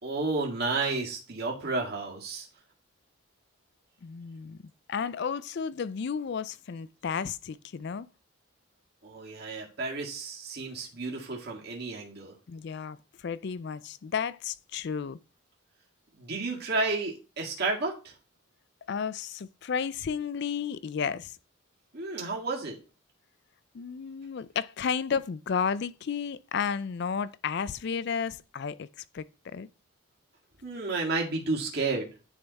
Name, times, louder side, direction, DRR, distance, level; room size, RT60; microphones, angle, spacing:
voice 1, 0.0-2.5 9.0-12.4 16.1-18.1 21.9-22.8 30.6-32.1, right 3 dB, 50° right, 1.9 m, -31 dB
voice 2, 4.0-4.6 4.9-8.1 12.5-15.2 18.9-21.4 23.7-28.9 29.1-29.7, left 6 dB, 55° left, 0.4 m, -32 dB
9.9 x 3.5 x 4.0 m
head